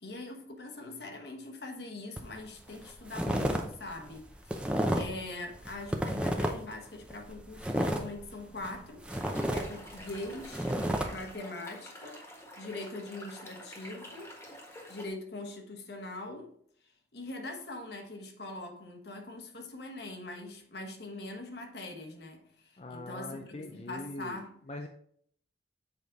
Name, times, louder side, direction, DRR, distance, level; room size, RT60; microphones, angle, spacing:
voice 1, 0.0-10.7 11.1-14.4 14.9-16.5 16.8-24.5, left 2 dB, 65° left, 1.2 m, -42 dB
sound 1, 2.2-2.4 2.7-3.6 3.9-5.2 5.6-6.7 7.1-8.8 9.0-11.1, equal, 5° right, 0.6 m, -31 dB
sound 2, 9.1-15.1, left 1 dB, 15° left, 1.4 m, -48 dB
voice 2, 22.8-24.9, left 2 dB, 35° left, 0.5 m, -42 dB
7.2 x 4.9 x 3.9 m
head